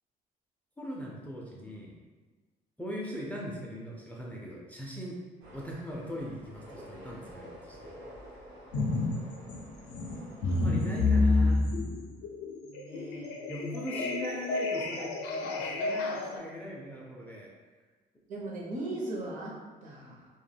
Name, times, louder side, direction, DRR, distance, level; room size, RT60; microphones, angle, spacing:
voice 1, 0.8-2.0 2.8-5.2 5.5-7.9 10.4-11.6 13.5-17.5 18.3-18.5, equal, 10° left, -3 dB, 0.3 m, -40 dB
sound 1, 5.4-11.1, equal, 80° right, 1.0 m, -49 dB
sound 2, 8.7-9.2 9.5-16.4, left 3 dB, 85° left, 0.4 m, -29 dB
voice 2, 12.6-13.4 16.4-16.5 16.9-17.3 18.3-20.3, right 2 dB, 50° right, -3 dB, 0.7 m, -40 dB
2.1 x 2.1 x 3.2 m, 1.4 s
cardioid pair, 110°, 17 cm